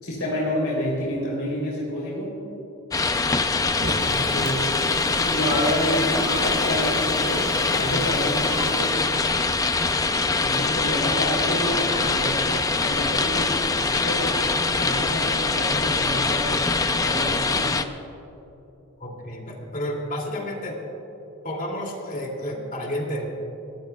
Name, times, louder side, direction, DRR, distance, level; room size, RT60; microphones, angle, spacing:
voice 1, 0.0-2.4 4.0-4.7 5.2-9.0 10.4-12.5 12.8-17.8, equal, 70° left, -6 dB, 3.4 m, -29 dB
sound 1, 2.9-17.8, left 3 dB, 15° left, 0.5 m, -23 dB
Fire, 3.7-9.4, right 2 dB, 60° right, 1.7 m, -37 dB
sound 2, 5.0-5.7 6.1-6.5 7.1-7.7 8.4-8.7 9.0-9.1 9.3-9.5 9.8-9.9 11.6-12.4, right 2 dB, 15° right, 3.2 m, -37 dB
voice 2, 19.0-20.8 21.4-23.3, equal, 40° left, 0 dB, 2.7 m, -31 dB
23.0 x 18.5 x 2.3 m, 3.0 s
head